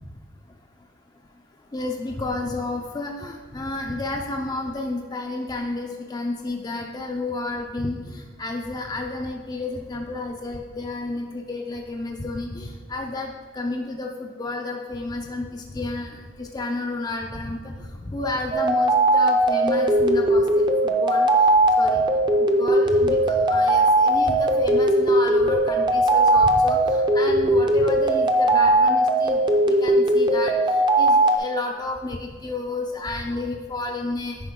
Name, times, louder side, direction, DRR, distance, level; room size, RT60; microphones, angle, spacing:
voice 1, 1.7-17.6 18.0-21.3 21.8-22.0 22.4-30.6 31.0-34.5, left 2 dB, 20° left, 1 dB, 0.5 m, -31 dB
sound 1, 18.5-31.4, right 1 dB, 25° right, 0.6 m, -19 dB
9.8 x 5.0 x 3.6 m, 1.4 s
head